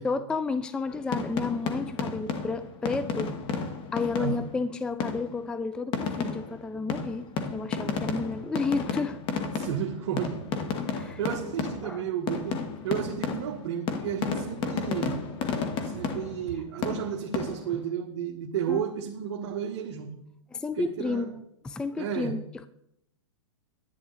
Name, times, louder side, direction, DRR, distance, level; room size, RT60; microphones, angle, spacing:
voice 1, 0.0-3.4 3.9-9.7 10.9-11.2 11.8-12.1 18.7-18.8 20.5-22.7, left 4 dB, 5° left, 13 dB, 0.3 m, -32 dB
sound 1, 0.9-4.6 5.0-5.4 5.9-12.0 12.3-16.6 16.8-17.8, left 5 dB, 30° left, 1.4 m, -32 dB
voice 2, 9.6-10.4 10.9-15.2 15.8-20.2 20.8-21.2 22.0-22.3, right 8 dB, 60° right, 1 dB, 1.3 m, -32 dB
10.5 x 10.5 x 4.0 m, 0.79 s
hypercardioid pair, 130°, 16 cm